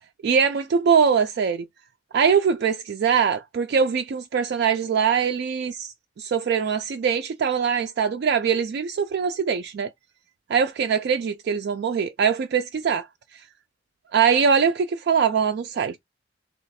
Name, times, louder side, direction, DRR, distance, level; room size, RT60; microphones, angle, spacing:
voice 1, 0.2-1.7 2.1-9.9 10.5-13.1 13.3-13.4 14.1-16.0, right 6 dB, 60° right, 0.3 m, -22 dB
3.1 x 2.9 x 4.1 m
head